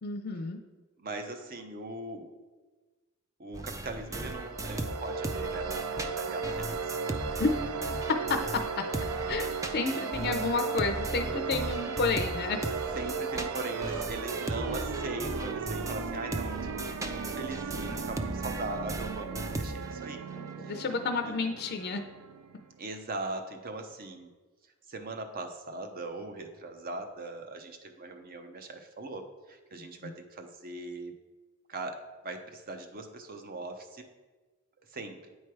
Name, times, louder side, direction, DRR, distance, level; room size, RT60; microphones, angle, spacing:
voice 1, 0.0-0.6 7.4-7.5 8.3-8.9 9.3-9.5 9.7-12.6 20.3-22.0 29.8-30.1, left 4 dB, 50° left, 4 dB, 0.5 m, -31 dB
voice 2, 1.0-2.3 3.4-7.0 9.9-10.5 13.0-20.2 20.6-20.8 21.3-21.4 22.8-24.3 24.9-31.1 31.7-34.0 34.9-35.3, right 2 dB, 45° right, 6 dB, 0.7 m, -40 dB
sound 1, 3.5-8.7 8.9-20.1, right 2 dB, 15° right, 0.4 m, -37 dB
sound 2, 4.1-22.8, right 5 dB, 80° right, 0.4 m, -36 dB
9.0 x 3.2 x 4.6 m, 1.3 s
head